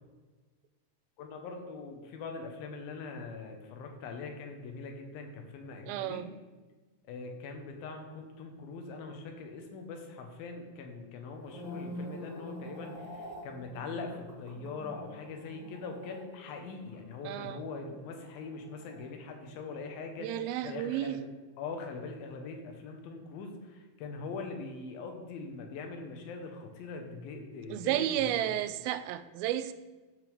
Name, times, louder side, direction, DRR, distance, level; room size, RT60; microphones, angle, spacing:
voice 1, 1.2-6.3 7.0-21.2 21.6-28.4, left 4 dB, 75° left, 4 dB, 2.9 m, -42 dB
voice 2, 5.9-6.3 17.2-17.6 20.2-21.2 27.7-29.7, right 12 dB, 80° right, 12 dB, 2.3 m, -32 dB
sound 1, 11.3-19.7 19.9-20.3, equal, 15° right, 1.6 m, -47 dB
14.5 x 6.6 x 3.5 m, 1.3 s
omnidirectional pair, 4.5 m